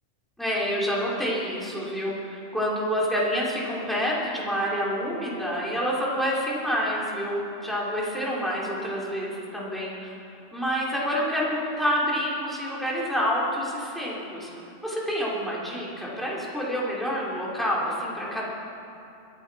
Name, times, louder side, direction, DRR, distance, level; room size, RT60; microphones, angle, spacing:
voice 1, 0.4-10.2 10.5-14.5 14.8-18.5, equal, ahead, -6 dB, 2.8 m, -28 dB
23.0 x 10.0 x 4.7 m, 2.8 s
omnidirectional pair, 1.3 m